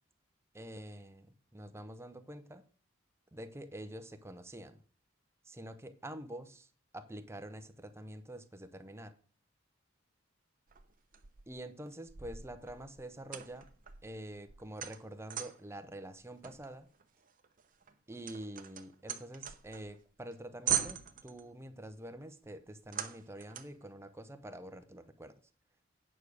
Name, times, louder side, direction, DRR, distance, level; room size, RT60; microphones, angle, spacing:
voice 1, 0.5-1.3 1.5-2.6 3.3-4.8 5.4-6.7 6.9-9.1 11.5-13.7 14.0-16.9 18.1-25.3, right 1 dB, 15° right, 8 dB, 0.8 m, -46 dB
sound 1, 10.7-11.6 12.1-15.8 16.4-20.0 20.3-20.4 20.7-21.5 22.9-23.8, right 10 dB, 45° right, 0.8 m, -40 dB
9.1 x 4.8 x 6.5 m, 0.42 s
head